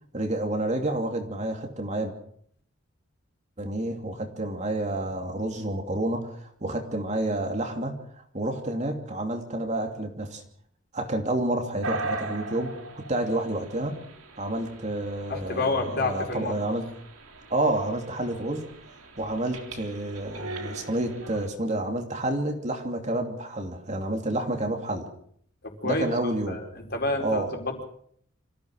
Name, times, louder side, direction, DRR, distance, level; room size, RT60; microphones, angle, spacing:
voice 1, 0.1-2.1 3.6-8.0 8.3-10.4 10.9-13.9 14.4-16.8 17.5-18.6 19.2-25.1 25.8-26.6 27.2-27.5, right 1 dB, 35° right, 4 dB, 2.8 m, -29 dB
sound 1, 11.8-21.5, right 3 dB, 85° right, 3.3 m, -40 dB
voice 2, 15.3-16.5 25.6-26.1 26.5-27.8, left 2 dB, 50° left, 2 dB, 5.0 m, -29 dB
26.5 x 15.5 x 6.4 m, 0.64 s
head